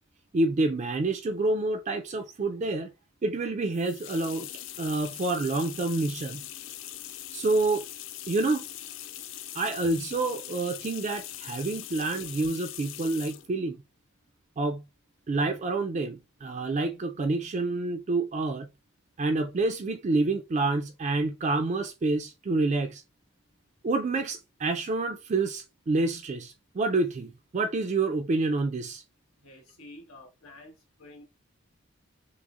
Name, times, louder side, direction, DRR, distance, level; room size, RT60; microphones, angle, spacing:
voice 1, 0.3-2.9 3.2-4.5 4.8-6.4 7.3-7.8 8.3-8.6 9.5-13.8 14.6-14.8 15.3-18.7 19.2-23.0 23.8-29.0, right 2 dB, 35° right, 0.3 m, -28 dB
sound 1, 3.7-13.5, left 12 dB, 60° left, 0.3 m, -41 dB
voice 2, 29.4-31.2, left 1 dB, 85° left, 1.4 m, -50 dB
6.0 x 2.0 x 2.4 m
head